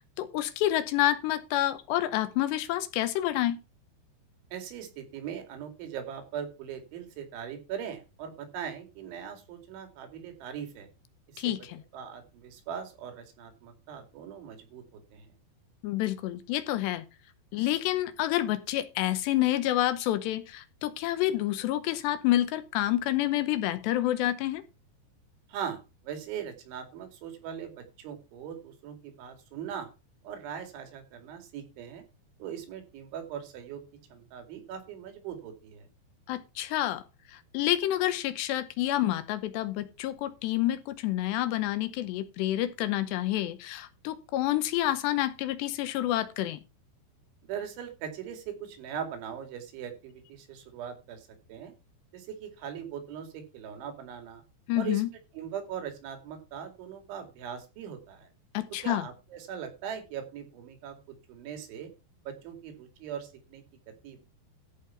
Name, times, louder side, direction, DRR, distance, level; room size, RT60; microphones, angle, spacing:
voice 1, 0.2-3.6 11.4-11.8 15.8-17.0 17.5-24.6 36.3-37.0 37.3-46.6 54.7-55.1 58.5-59.0, left 14 dB, 80° left, 2.8 m, -28 dB
voice 2, 4.5-10.9 11.3-11.5 11.9-15.3 25.5-29.9 30.2-32.0 32.4-33.8 34.1-35.9 47.4-51.7 52.1-54.4 54.8-55.0 55.3-58.3 58.8-61.0 61.3-61.9 62.3-63.6 64.0-64.2, right 8 dB, 85° right, 4.8 m, -40 dB
14.0 x 5.7 x 5.7 m
omnidirectional pair, 5.3 m